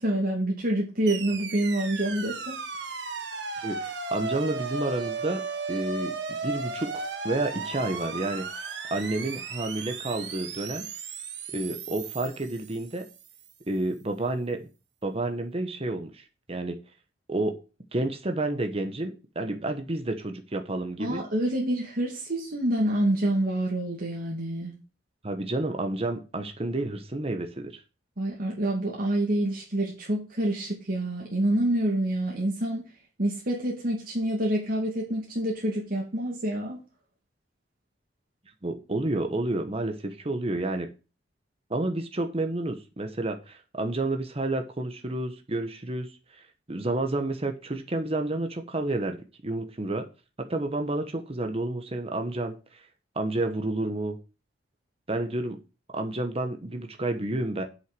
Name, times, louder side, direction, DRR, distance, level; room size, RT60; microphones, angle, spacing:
voice 1, 0.0-2.6 21.0-24.7 28.2-32.8 33.2-36.8, right 1 dB, 55° right, -2 dB, 2.5 m, -27 dB
sound 1, 1.1-13.3, right 4 dB, 75° right, 1.7 m, -35 dB
voice 2, 3.6-5.4 5.7-6.1 6.4-8.4 8.9-10.8 11.5-13.0 13.7-14.7 15.0-16.8 17.3-17.6 17.9-21.2 25.2-27.8 38.6-40.9 41.7-46.1 46.7-49.2 49.4-50.1 50.5-52.6 53.2-54.2 55.1-55.6 55.9-57.6, right 2 dB, 35° right, 6 dB, 1.2 m, -30 dB
8.1 x 6.5 x 6.2 m, 0.32 s
head